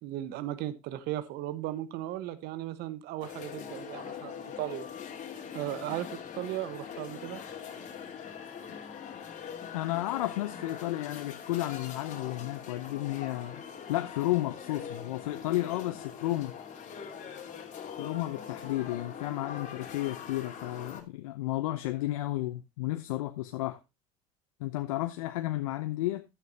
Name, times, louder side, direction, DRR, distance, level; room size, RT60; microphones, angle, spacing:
voice 1, 0.0-4.9 5.5-7.4, right 13 dB, 65° right, 1.2 m, -36 dB
sound 1, 3.2-21.0, left 7 dB, 45° left, 2.4 m, -42 dB
voice 2, 9.7-13.6 13.9-16.5 18.0-23.8 24.6-26.2, left 16 dB, 80° left, 0.7 m, -32 dB
11.0 x 9.3 x 2.8 m
hypercardioid pair, 75°, 18 cm